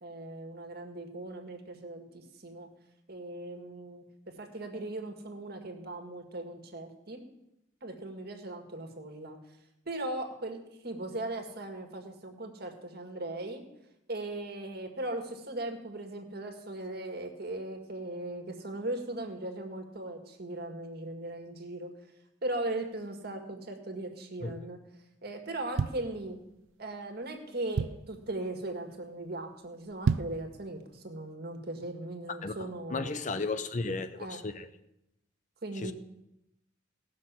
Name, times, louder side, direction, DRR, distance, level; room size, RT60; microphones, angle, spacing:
voice 1, 0.0-2.7 3.1-7.3 7.8-9.4 9.9-13.6 14.1-21.9 22.4-24.8 25.2-26.4 26.8-33.3 34.0-34.4 35.6-35.9, right 2 dB, 55° right, 1.9 m, -38 dB
sound 1, 25.5-26.7 27.2-27.3 27.5-28.2 28.7-29.0 29.2-29.3 29.9-30.5 30.9-31.0, right 5 dB, 85° right, 0.4 m, -31 dB
voice 2, 32.9-34.7 35.8-35.9, left 3 dB, 40° left, 0.7 m, -34 dB
17.5 x 6.3 x 7.5 m
head